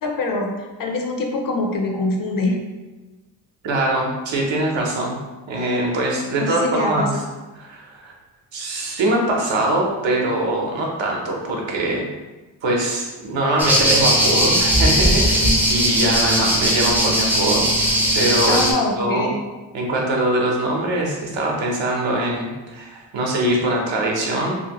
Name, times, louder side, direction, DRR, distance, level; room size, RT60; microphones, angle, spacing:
voice 1, 0.0-2.6 6.4-7.1 18.5-19.3, left 2 dB, 50° left, 1 dB, 0.5 m, -24 dB
voice 2, 3.6-5.2 5.5-7.2 7.5-8.1 8.5-12.1 12.6-18.6 19.0-19.4 19.7-24.6, right 1 dB, 85° right, -1 dB, 0.8 m, -22 dB
sound 1, 13.6-18.7, equal, 5° right, 0.3 m, -18 dB
2.7 x 2.6 x 2.9 m, 1.2 s
wide cardioid pair, 150°, 44 cm